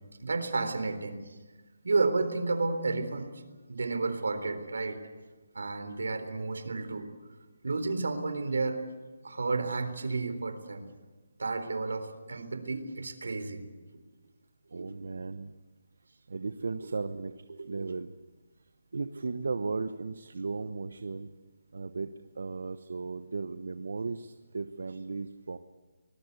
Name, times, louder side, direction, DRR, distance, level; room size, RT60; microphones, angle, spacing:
voice 1, 0.2-1.4 1.8-3.4 3.7-5.0 5.5-7.1 7.6-8.8 9.2-10.9 11.4-13.6 14.7-14.9 16.8-16.9 17.6-17.9, right 3 dB, 80° right, 9 dB, 3.9 m, -31 dB
voice 2, 14.7-15.5 16.3-17.3 17.6-18.1 18.9-21.3 21.7-22.1 22.4-25.6, right 4 dB, 65° right, 10 dB, 1.0 m, -36 dB
24.5 x 19.5 x 8.3 m, 1.3 s
hypercardioid pair, 175°, 0 cm